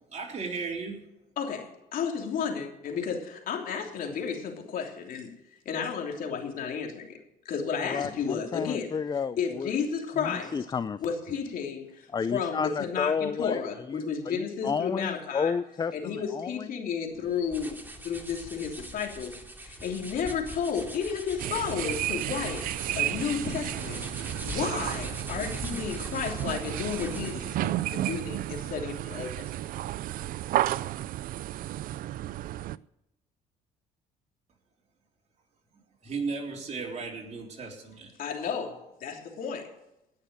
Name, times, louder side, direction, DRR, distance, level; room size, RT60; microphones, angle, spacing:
voice 1, 0.1-1.0 36.0-38.2, right 4 dB, 45° right, 0 dB, 3.8 m, -35 dB
voice 2, 1.4-5.3 5.6-7.2 7.4-8.9 9.4-10.6 11.0-15.5 15.9-17.8 18.0-19.3 19.6-24.0 24.4-29.5 38.2-39.8, left 6 dB, 65° left, 2 dB, 3.1 m, -32 dB
voice 3, 7.8-9.7 10.2-11.0 12.1-13.6 13.9-16.7, left 6 dB, 25° left, 14 dB, 0.5 m, -31 dB
sound 1, 17.1-27.5, right 1 dB, 10° right, 2.7 m, -42 dB
sound 2, 21.4-32.8, right 14 dB, 65° right, 0.5 m, -32 dB
18.5 x 6.7 x 6.7 m, 0.85 s
supercardioid pair, 70°, 16 cm